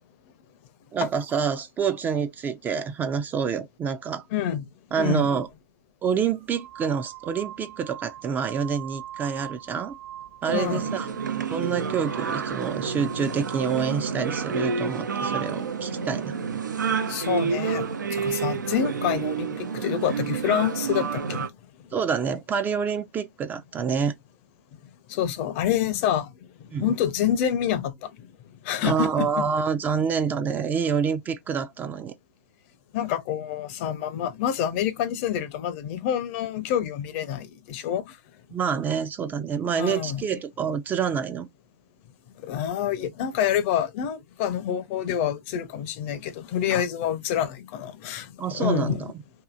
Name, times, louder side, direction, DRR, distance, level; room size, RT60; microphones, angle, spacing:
voice 1, 0.9-4.2 4.9-5.5 6.0-10.0 10.4-16.4 21.9-24.1 26.7-26.9 28.8-32.1 38.5-41.5 48.4-49.1, right 6 dB, 20° right, 0.3 m, -27 dB
voice 2, 4.3-4.7 5.0-5.3 10.5-11.0 17.1-21.5 25.1-26.3 26.8-28.1 28.6-29.5 32.9-38.1 39.8-40.2 42.4-48.3 48.5-49.0, left 9 dB, 45° left, 0.5 m, -27 dB
sound 1, 5.4-5.5 6.3-14.0, right 12 dB, 45° right, 0.9 m, -42 dB
sound 2, 10.4-21.5, right 6 dB, 85° right, 0.5 m, -29 dB
2.7 x 2.6 x 2.4 m
hypercardioid pair, 120°, 10 cm